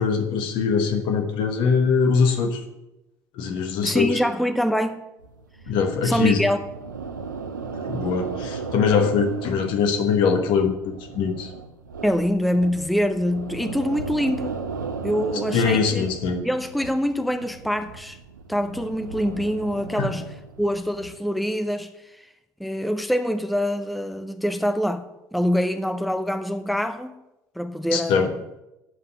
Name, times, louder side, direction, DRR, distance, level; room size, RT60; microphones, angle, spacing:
voice 1, 0.0-2.6 3.3-4.2 5.7-6.5 7.7-11.5 15.5-16.4 20.0-20.1 27.9-28.3, left 5 dB, 60° left, 1.3 m, -22 dB
voice 2, 3.8-5.0 6.0-6.6 12.0-14.6 15.0-16.1 16.4-18.2 18.5-20.2 20.6-21.9 22.2-22.3 22.6-25.0 25.3-27.2 27.6-28.3, equal, ahead, 0.6 m, -24 dB
sound 1, 5.2-21.2, right 5 dB, 85° right, 0.6 m, -36 dB
7.9 x 5.6 x 6.7 m
figure-of-eight pair, 60°, 10 cm